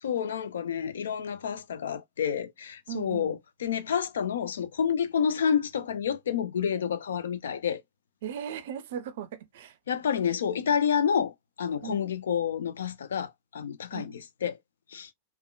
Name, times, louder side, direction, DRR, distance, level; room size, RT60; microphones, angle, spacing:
voice 1, 0.0-7.8 9.9-14.6 14.9-15.1, left 7 dB, 65° left, 0.4 m, -29 dB
voice 2, 2.9-3.4 8.2-9.8 11.8-12.1 13.9-14.1, right 9 dB, 55° right, 0.4 m, -38 dB
3.5 x 2.1 x 2.3 m
figure-of-eight pair, 90°, 0 cm